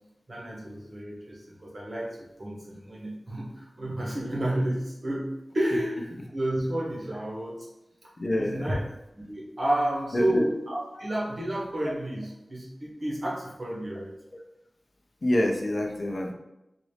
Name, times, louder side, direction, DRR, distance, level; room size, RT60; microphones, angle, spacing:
voice 1, 0.3-2.1 2.4-3.5 3.8-5.3 5.5-7.7 8.4-8.8 9.3-14.1, right 1 dB, 50° right, -4 dB, 1.3 m, -30 dB
voice 2, 8.2-8.7 10.1-10.4 15.2-16.3, left 1 dB, 55° left, 2 dB, 0.6 m, -26 dB
4.0 x 2.6 x 3.3 m, 0.87 s
wide cardioid pair, 55°, 0 cm